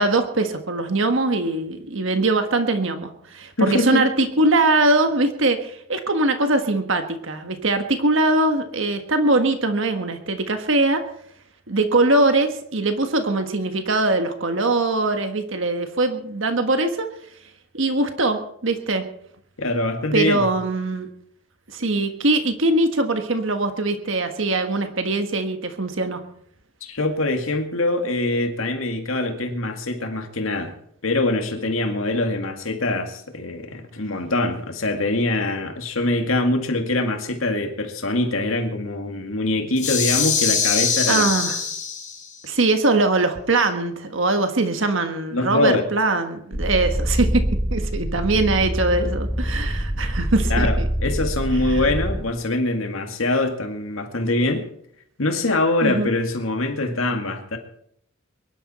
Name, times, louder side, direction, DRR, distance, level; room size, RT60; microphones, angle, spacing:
voice 1, 0.0-11.0 11.7-17.1 17.7-19.0 20.1-21.1 21.7-26.2 41.1-41.6 42.4-47.4 47.7-50.9 51.7-51.8 55.8-56.1, right 2 dB, 65° right, 7 dB, 1.5 m, -22 dB
voice 2, 3.6-4.0 19.6-20.5 26.8-30.7 31.0-41.4 45.3-45.8 50.5-54.6 55.2-57.6, left 2 dB, 75° left, 5 dB, 2.1 m, -23 dB
sound 1, 39.8-42.3, left 6 dB, 35° left, 5.7 m, -23 dB
sound 2, 46.5-52.2, equal, 5° right, 2.7 m, -25 dB
22.5 x 12.0 x 4.3 m, 0.69 s
head